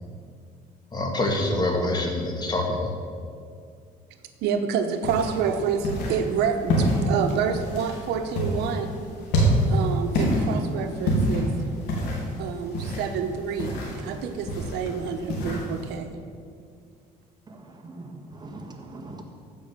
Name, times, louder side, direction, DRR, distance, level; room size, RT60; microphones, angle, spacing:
voice 1, 0.9-2.9, left 2 dB, 25° left, 2 dB, 2.0 m, -25 dB
voice 2, 4.4-8.9 9.7-11.5 12.4-13.7 14.0-16.2, right 7 dB, 85° right, 6 dB, 1.0 m, -28 dB
sound 1, 5.0-16.0, equal, 90° left, 3.3 m, -27 dB
voice 3, 17.5-19.2, right 2 dB, 25° right, 2 dB, 1.8 m, -41 dB
14.5 x 5.5 x 7.3 m, 2.2 s
cardioid pair, 110°, 17 cm